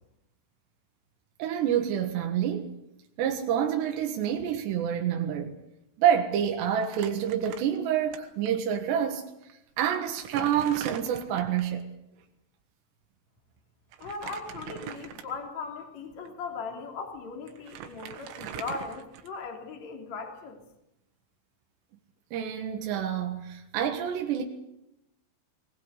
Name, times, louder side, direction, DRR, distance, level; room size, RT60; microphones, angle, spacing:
voice 1, 1.4-2.7 3.2-5.6 6.0-9.3 9.8-11.8 22.3-24.4, right 9 dB, 70° right, 3.6 m, -27 dB
Crumpling crinkling, 6.8-8.2 8.5-8.6 9.4-9.5 9.9-11.7 13.9-15.5 16.1-16.3 17.2-17.3 17.5-19.6, right 9 dB, 85° right, 4.1 m, -41 dB
voice 2, 14.0-20.6, left 4 dB, 40° left, 4.0 m, -38 dB
21.0 x 20.5 x 8.4 m
omnidirectional pair, 5.4 m